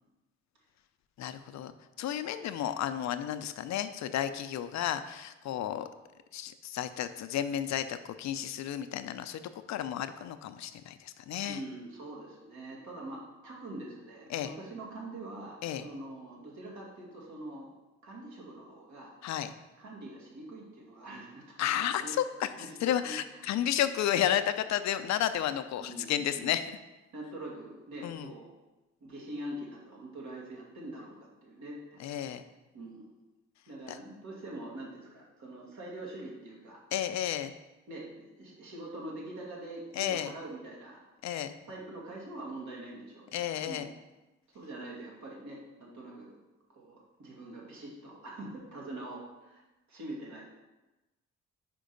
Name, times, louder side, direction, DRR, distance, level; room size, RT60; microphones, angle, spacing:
voice 1, 1.2-5.9 6.3-9.4 9.7-11.6 14.3-14.5 15.6-15.9 19.2-19.5 21.6-22.5 22.8-26.7 28.0-28.3 32.0-32.4 33.9-34.0 36.9-37.5 39.9-40.3 41.2-41.5 43.3-43.9, left 11 dB, 65° left, 11 dB, 0.5 m, -32 dB
voice 2, 11.4-17.7 18.0-19.2 19.8-22.2 22.5-23.5 25.8-26.6 27.1-28.5 29.0-32.4 32.7-33.1 33.7-36.8 37.9-41.0 41.7-43.8 44.5-46.4 46.7-49.6 49.9-50.4, right 1 dB, 70° right, -3 dB, 2.0 m, -44 dB
5.1 x 4.6 x 5.2 m, 1.1 s
cardioid pair, 90°, 30 cm